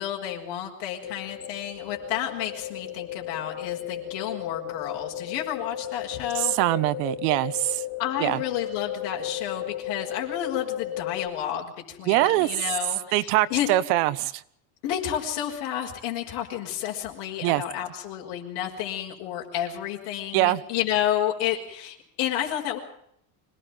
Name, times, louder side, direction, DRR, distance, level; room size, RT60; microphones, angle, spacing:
voice 1, 0.0-6.5 8.0-13.7 14.8-22.8, left 11 dB, 60° left, -1 dB, 5.8 m, -31 dB
sound 1, 1.0-11.3, left 11 dB, 30° left, 4.7 m, -35 dB
voice 2, 6.3-7.8 8.2-8.4 12.1-12.5 13.1-14.4 17.4-17.6 20.3-20.6, right 16 dB, 85° right, 14 dB, 1.5 m, -23 dB
25.5 x 19.0 x 7.5 m, 0.72 s
cardioid pair, 175°, 43 cm